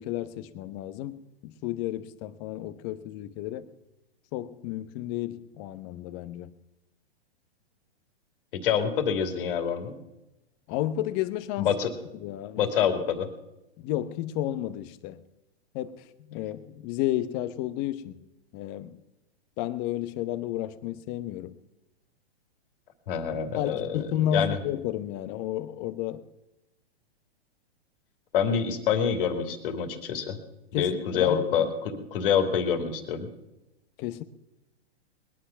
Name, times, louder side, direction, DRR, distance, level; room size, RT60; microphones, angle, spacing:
voice 1, 0.0-3.7 4.3-6.6 10.7-11.7 12.2-12.6 13.8-15.2 15.7-18.2 18.5-19.0 19.6-21.5 23.5-26.2 30.7-32.0 34.0-34.2, left 12 dB, 35° left, 12 dB, 0.9 m, -32 dB
voice 2, 8.6-9.9 11.6-11.9 12.6-13.3 23.1-24.0 24.3-24.6 28.3-30.4 30.7-33.3, left 7 dB, 60° left, 6 dB, 2.5 m, -26 dB
20.5 x 10.0 x 5.8 m, 0.95 s
hypercardioid pair, 125°, 32 cm